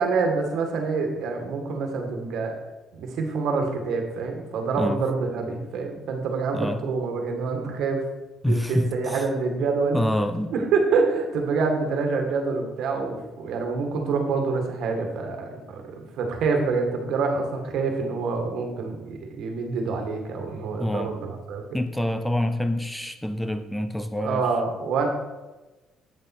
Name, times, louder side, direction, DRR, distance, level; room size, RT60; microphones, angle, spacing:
voice 1, 0.0-2.5 2.9-8.0 8.4-10.0 10.5-21.8 24.2-25.1, right 4 dB, 70° right, 3 dB, 1.9 m, -26 dB
voice 2, 8.4-9.2 9.9-10.5 20.8-21.2 21.7-24.5, left 1 dB, 5° left, 9 dB, 0.6 m, -26 dB
9.4 x 6.8 x 4.3 m, 1.1 s
cardioid pair, 100°, 0 cm